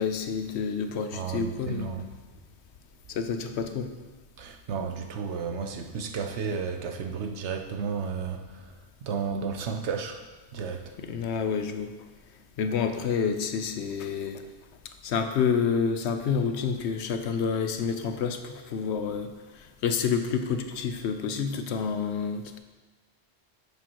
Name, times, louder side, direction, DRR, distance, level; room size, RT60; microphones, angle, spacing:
voice 1, 0.0-1.9 3.1-3.9 11.0-11.9 12.6-14.4 15.0-22.6, left 6 dB, 75° left, 7 dB, 0.9 m, -29 dB
voice 2, 1.1-2.1 4.4-8.7 9.0-10.2 10.5-10.9, right 5 dB, 85° right, 5 dB, 1.1 m, -32 dB
10.5 x 6.9 x 3.0 m, 1.3 s
omnidirectional pair, 1.1 m